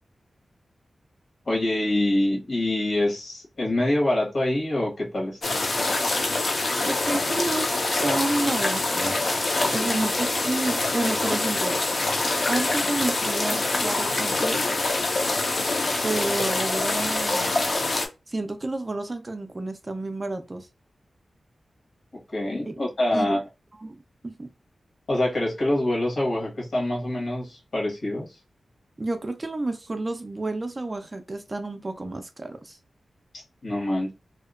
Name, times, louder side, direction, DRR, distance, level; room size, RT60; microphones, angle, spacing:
voice 1, 1.4-5.6 9.6-10.0 22.3-23.4 25.1-28.4 33.6-34.1, left 1 dB, 65° left, 1.3 m, -25 dB
sound 1, 5.4-18.1, left 2 dB, 45° left, 0.5 m, -25 dB
voice 2, 6.8-7.8 8.0-9.2 9.7-11.8 12.5-14.7 16.0-17.6 18.3-20.7 22.7-22.8 23.1-23.4 23.8-24.5 29.0-32.8, right 2 dB, 25° right, 0.3 m, -30 dB
2.7 x 2.1 x 2.3 m
wide cardioid pair, 145°, 0 cm